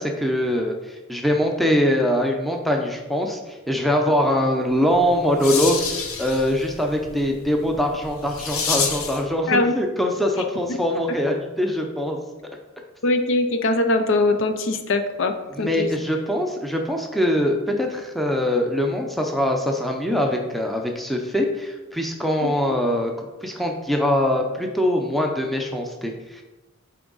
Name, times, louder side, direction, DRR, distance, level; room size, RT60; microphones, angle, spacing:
voice 1, 0.0-5.8 6.2-12.2 15.6-23.1 23.4-26.4, left 1 dB, ahead, 1 dB, 0.6 m, -23 dB
sound 1, 4.8-9.3, left 5 dB, 80° left, 0.9 m, -29 dB
voice 2, 13.0-15.9 22.4-22.5, left 2 dB, 60° left, 7 dB, 0.6 m, -21 dB
8.4 x 3.5 x 3.9 m, 1.1 s
head